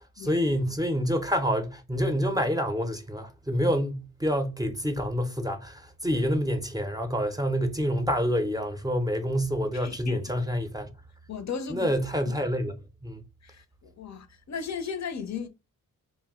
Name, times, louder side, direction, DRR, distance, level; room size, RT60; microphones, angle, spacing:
voice 1, 0.2-10.9 11.7-12.7 13.0-13.2, equal, 10° right, 0.5 m, -27 dB
voice 2, 9.7-10.3 11.3-11.9 13.4-15.5, left 6 dB, 50° left, 0.5 m, -36 dB
2.6 x 2.1 x 3.5 m
cardioid pair, 65°, 35 cm